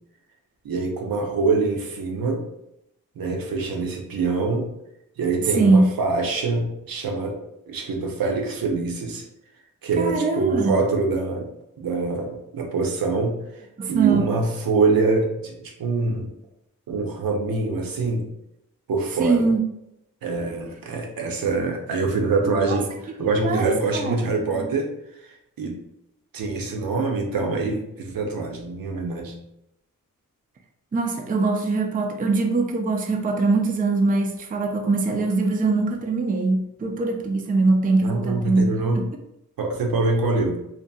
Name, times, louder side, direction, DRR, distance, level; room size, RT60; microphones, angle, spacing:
voice 1, 0.6-2.4 3.2-4.7 5.2-7.4 7.7-9.2 9.8-11.5 11.8-16.3 16.9-18.2 18.9-19.5 20.2-22.9 23.2-24.9 25.2-25.8 26.3-29.4 38.0-39.0 39.6-40.6, right 3 dB, 85° right, 2 dB, 0.6 m, -24 dB
voice 2, 5.5-5.9 10.0-10.8 13.8-14.3 19.2-19.6 22.7-22.8 23.2-24.3 24.5-24.7 30.9-39.1, right 3 dB, 25° right, 4 dB, 0.3 m, -22 dB
2.7 x 2.5 x 2.2 m, 0.82 s
wide cardioid pair, 70°, 34 cm